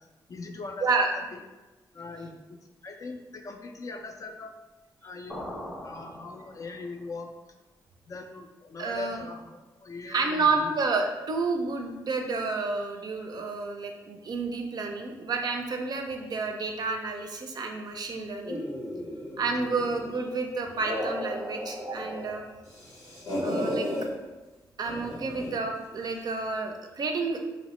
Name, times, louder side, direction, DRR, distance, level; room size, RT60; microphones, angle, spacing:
voice 1, 0.3-1.1 1.3-1.4 1.9-4.5 5.0-7.3 8.1-10.7 19.1-19.9 22.8-22.9 23.6-23.8, left 3 dB, 45° left, 5 dB, 0.3 m, -41 dB
sound 1, 5.3-7.0, equal, 10° right, 0.7 m, -41 dB
voice 2, 8.8-9.2 10.1-18.6 19.4-22.5 23.4-23.9 24.8-27.4, right 4 dB, 55° right, 3 dB, 0.4 m, -30 dB
sound 2, 18.4-20.2 20.6-22.3 22.6-24.1 24.8-25.6, left 1 dB, 90° left, 1.0 m, -34 dB
2.9 x 2.0 x 3.0 m, 1.1 s
cardioid pair, 65°, 8 cm